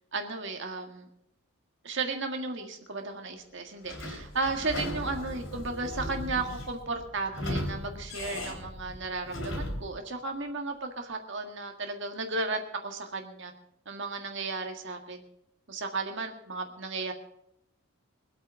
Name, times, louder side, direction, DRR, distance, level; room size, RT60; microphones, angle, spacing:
voice 1, 0.1-1.1 1.8-13.5 13.8-15.2 15.7-17.1, right 3 dB, 55° right, 3 dB, 1.8 m, -34 dB
Sliding door / Squeak, 3.8-10.0, left 1 dB, 60° left, 3.5 m, -37 dB
23.5 x 8.6 x 4.8 m, 0.75 s
head